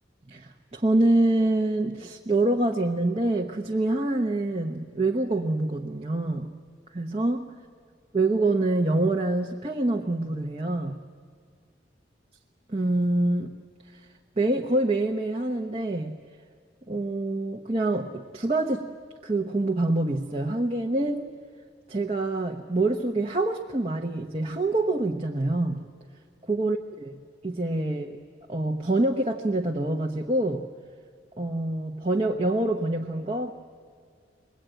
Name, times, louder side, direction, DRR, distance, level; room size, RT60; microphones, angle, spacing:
voice 1, 0.3-6.5 6.9-7.5 8.1-11.0 12.7-13.5 13.9-14.1 14.4-16.1 16.9-18.9 19.2-21.3 21.9-25.9 26.4-28.2 28.5-30.6 31.4-33.5, right 2 dB, 30° right, 2 dB, 1.0 m, -26 dB
25.5 x 21.0 x 9.1 m, 2.1 s
head